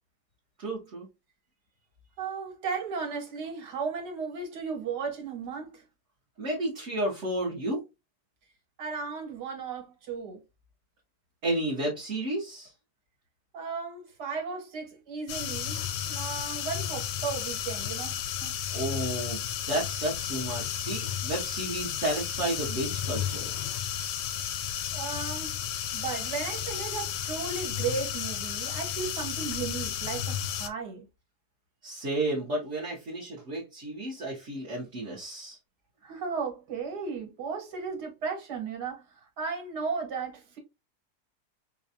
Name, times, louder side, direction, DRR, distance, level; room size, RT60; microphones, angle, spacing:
voice 1, 0.6-1.1 6.4-7.8 11.4-12.7 18.7-23.5 31.8-35.6, right 1 dB, 50° right, 1.3 m, -32 dB
voice 2, 2.2-5.9 8.8-10.4 13.5-15.8 16.1-18.6 24.9-31.1 36.0-40.6, right 5 dB, 85° right, 1.9 m, -35 dB
sound 1, 15.3-30.7, left 9 dB, 70° left, 0.9 m, -33 dB
5.1 x 2.3 x 2.6 m
omnidirectional pair, 1.7 m